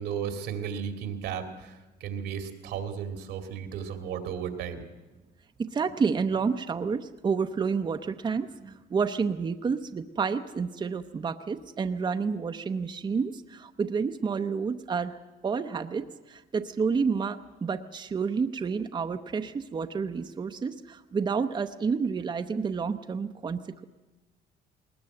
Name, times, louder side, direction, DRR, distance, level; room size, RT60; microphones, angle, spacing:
voice 1, 0.0-4.8, right 8 dB, 85° right, 6 dB, 2.3 m, -34 dB
voice 2, 5.6-23.8, right 5 dB, 25° right, 7 dB, 0.7 m, -30 dB
20.0 x 19.5 x 7.8 m, 1.2 s
cardioid pair, 110°, 17 cm